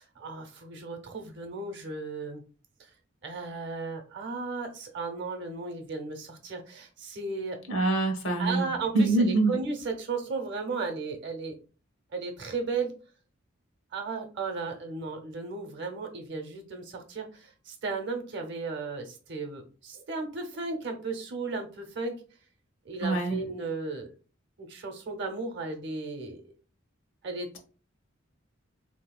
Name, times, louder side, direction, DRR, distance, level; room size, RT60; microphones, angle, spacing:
voice 1, 0.0-2.4 3.2-7.6 8.4-11.6 12.1-12.9 13.9-22.2 22.8-24.1 24.6-26.4 27.2-27.5, right 4 dB, 60° right, 3 dB, 0.8 m, -35 dB
voice 2, 7.7-8.7 8.9-9.5 23.0-23.4, right 2 dB, 65° left, 4 dB, 0.9 m, -24 dB
3.5 x 2.8 x 2.3 m, 0.37 s
head